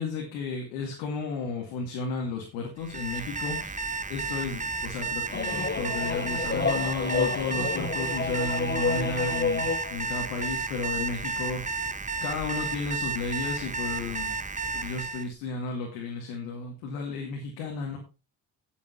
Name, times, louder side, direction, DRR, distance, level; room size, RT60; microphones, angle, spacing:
voice 1, 0.0-3.8 4.1-11.6 12.2-14.4 14.7-18.0, left 4 dB, 90° left, 0 dB, 2.2 m, -33 dB
Alarm, 2.8-15.3, right 4 dB, 20° right, 1.0 m, -32 dB
sound 1, 5.3-10.0, left 4 dB, 25° left, 1.3 m, -29 dB
17.5 x 7.0 x 3.0 m, 0.29 s
supercardioid pair, 50°, 40 cm